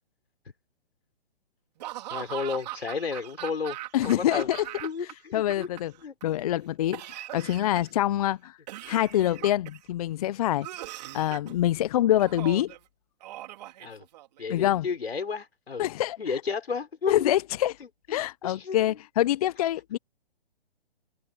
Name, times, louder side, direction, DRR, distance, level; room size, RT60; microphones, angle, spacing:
Laughter / Cough, 1.8-5.1 5.4-6.2 6.9-8.0 8.7-9.9 10.6-11.5 12.2-12.8 13.2-14.4, right 15 dB, 45° right, 3.2 m, -40 dB
voice 1, 2.1-3.8 4.0-4.5 4.8-5.7 6.0-6.1 13.8-14.0 14.4-15.9 16.2-17.3 17.8-19.0, left 5 dB, 80° left, 6.0 m, -33 dB
voice 2, 3.9-4.6 5.3-5.9 6.2-7.0 7.3-8.6 8.9-10.7 11.1-12.7 14.5-14.8 15.8-16.2 17.1-17.7 18.1-20.0, left 13 dB, 40° left, 0.7 m, -25 dB
hypercardioid pair, 140°, 30 cm